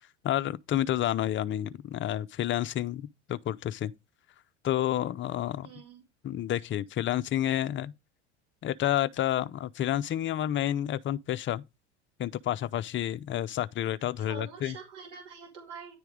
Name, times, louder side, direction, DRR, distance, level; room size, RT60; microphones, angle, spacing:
voice 1, 0.2-3.9 4.6-5.7 6.2-7.9 8.6-11.6 12.2-14.8, left 12 dB, 35° left, 0.6 m, -30 dB
voice 2, 5.6-6.0 14.2-15.9, right 5 dB, 75° right, 2.3 m, -45 dB
10.0 x 3.4 x 4.7 m
hypercardioid pair, 80°, 36 cm